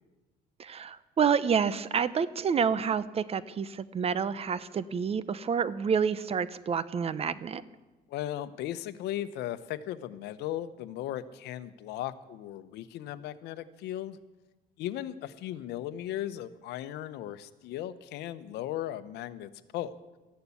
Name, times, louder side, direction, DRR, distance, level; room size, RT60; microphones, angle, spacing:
voice 1, 0.6-7.6, right 6 dB, 35° right, 16 dB, 0.8 m, -28 dB
voice 2, 8.1-14.2 14.8-20.0, left 12 dB, 85° left, 13 dB, 0.9 m, -37 dB
14.0 x 11.5 x 8.4 m, 1.1 s
cardioid pair, 110°, 17 cm